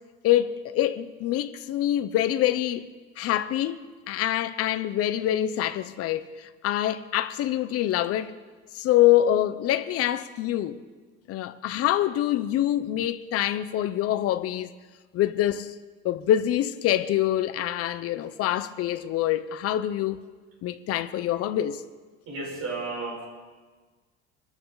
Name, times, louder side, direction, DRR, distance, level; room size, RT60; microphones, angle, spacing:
voice 1, 0.2-2.9 3.2-8.3 8.7-10.8 11.3-14.7 15.1-15.7 16.0-20.2 20.6-21.8, left 12 dB, 55° left, 0.8 m, -25 dB
voice 2, 22.3-23.3, right 3 dB, 60° right, 6.4 m, -33 dB
25.0 x 13.0 x 4.0 m
cardioid pair, 130°, 29 cm